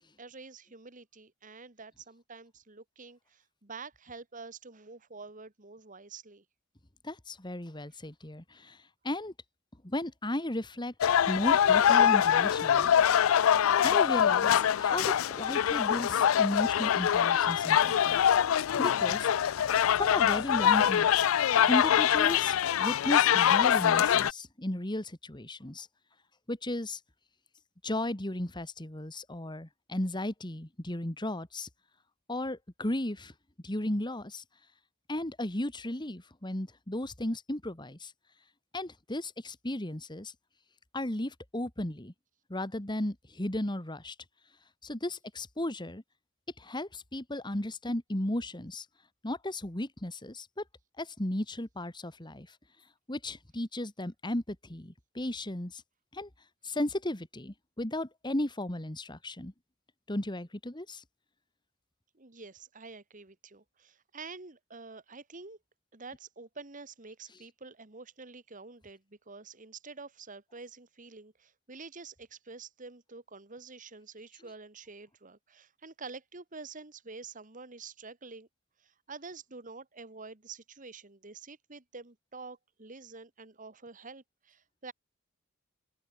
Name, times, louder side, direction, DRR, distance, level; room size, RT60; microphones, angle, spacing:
voice 1, 0.2-6.4 62.1-65.6 65.9-78.5 78.8-84.9, right 4 dB, 40° right, 1.8 m, -48 dB
voice 2, 7.0-8.8 9.0-9.3 9.8-12.9 13.8-18.2 18.8-19.3 20.0-21.2 21.7-25.9 26.5-27.0 27.8-31.7 32.3-33.3 33.6-34.4 35.1-38.1 38.7-40.3 40.9-42.1 42.5-44.2 44.8-46.0 46.6-48.9 49.2-50.6 51.0-52.5 53.1-55.8 56.1-56.3 56.6-59.5 60.1-61.0, left 1 dB, 20° left, 1.9 m, -35 dB
sound 1, 11.0-24.3, left 9 dB, 85° left, 0.4 m, -24 dB
open air
head